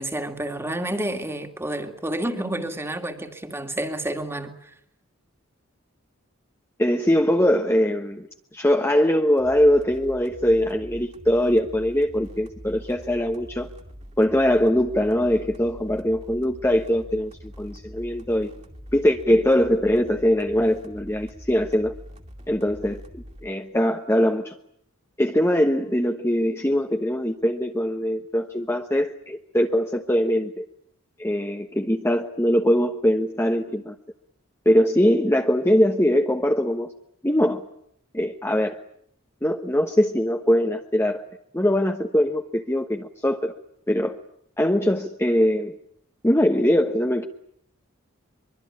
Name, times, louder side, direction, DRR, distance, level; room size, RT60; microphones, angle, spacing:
voice 1, 0.0-4.7, right 1 dB, 10° right, 2.3 m, -30 dB
voice 2, 6.8-13.7 14.2-17.3 17.6-18.5 18.9-21.9 22.5-24.6 25.2-30.6 31.2-33.9 34.6-36.9 37.2-37.6 38.1-38.8 39.4-41.3 41.5-43.5 43.9-44.2 44.6-45.8 46.2-47.3, equal, 10° left, 1.1 m, -22 dB
sound 1, 9.4-23.5, equal, 35° right, 2.6 m, -43 dB
24.0 x 23.5 x 9.8 m
head